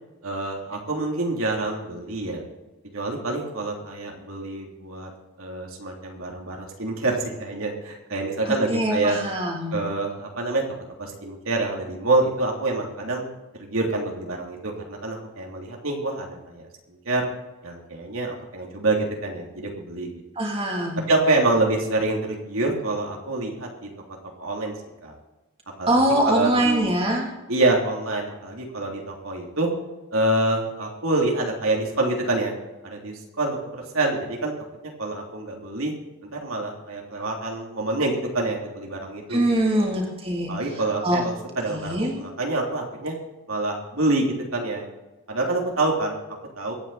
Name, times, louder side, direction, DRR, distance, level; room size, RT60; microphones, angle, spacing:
voice 1, 0.2-2.4 2.9-5.1 5.4-9.2 9.7-10.6 11.0-13.2 13.6-16.7 17.1-17.3 17.6-20.1 21.1-23.9 24.4-24.7 25.0-25.1 25.8-26.9 27.5-29.7 30.1-32.5 32.8-34.5 35.0-35.9 36.3-39.9 40.5-43.2 43.5-44.9 45.3-46.2 46.6-46.7, right 2 dB, 75° right, 0 dB, 3.3 m, -26 dB
voice 2, 8.5-9.8 20.3-21.1 25.9-27.3 39.3-40.5 41.0-41.2 41.7-42.1, right 1 dB, 25° right, -1 dB, 3.1 m, -23 dB
24.0 x 9.5 x 4.3 m, 1.1 s
head